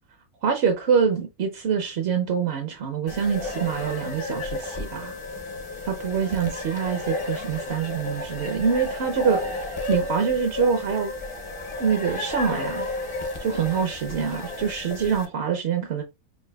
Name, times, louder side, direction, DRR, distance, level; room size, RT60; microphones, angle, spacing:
voice 1, 0.4-5.1 5.9-11.1 11.8-12.9 13.4-16.0, right 6 dB, 60° right, 0.7 m, -25 dB
sound 1, 3.1-15.2, left 2 dB, 35° left, 0.5 m, -32 dB
5.7 x 2.5 x 2.2 m
omnidirectional pair, 1.5 m